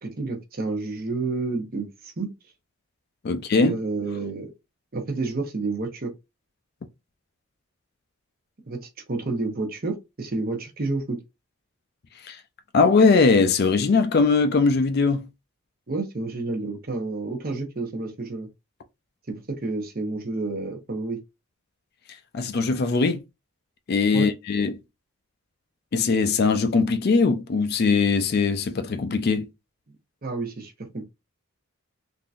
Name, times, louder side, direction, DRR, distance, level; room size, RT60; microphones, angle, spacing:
voice 1, 0.0-2.3 3.6-4.5 4.9-6.1 8.7-11.2 15.9-18.5 19.3-21.2 24.1-24.3 30.2-31.0, right 3 dB, 40° right, 0.8 m, -30 dB
voice 2, 3.2-3.7 12.2-12.4 12.7-15.3 22.3-23.2 23.9-24.7 25.9-29.4, left 4 dB, 45° left, 0.4 m, -20 dB
3.6 x 2.6 x 2.4 m
head